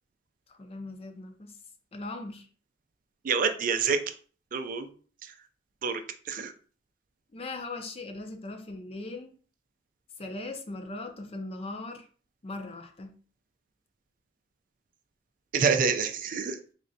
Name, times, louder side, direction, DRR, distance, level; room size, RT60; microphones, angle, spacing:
voice 1, 0.5-1.5 1.9-2.5 7.3-9.3 10.2-12.1 12.4-13.1, left 2 dB, 35° left, 6 dB, 0.5 m, -39 dB
voice 2, 3.2-4.0 4.5-4.9 5.8-6.0 6.3-6.5 15.5-16.6, right 5 dB, 50° right, 8 dB, 0.4 m, -26 dB
3.8 x 3.2 x 2.6 m, 0.41 s
head